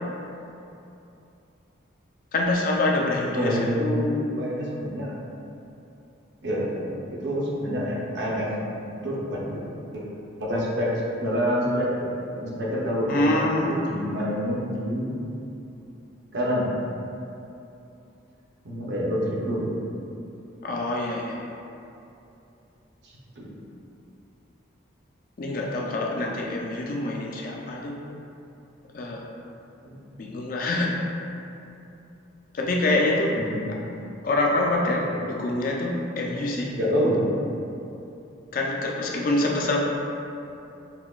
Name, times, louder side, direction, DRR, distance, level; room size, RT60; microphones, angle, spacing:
voice 1, 2.3-3.6 13.1-13.8 20.6-21.5 25.4-28.0 28.9-29.3 30.2-30.9 32.5-33.4 34.2-36.7 38.5-39.8, left 2 dB, 45° left, -1 dB, 0.3 m, -25 dB
voice 2, 3.3-5.2 6.4-6.7 7.1-8.5 9.0-9.5 9.9-10.0 10.4-10.9 11.2-12.1 12.3-13.4 13.7-15.2 16.3-16.7 18.6-19.7 23.0-23.5 29.8-30.2 33.5-33.6 35.0-35.2 36.8-37.2, equal, 60° right, -5 dB, 0.7 m, -27 dB
5.6 x 2.1 x 2.3 m, 2.8 s
head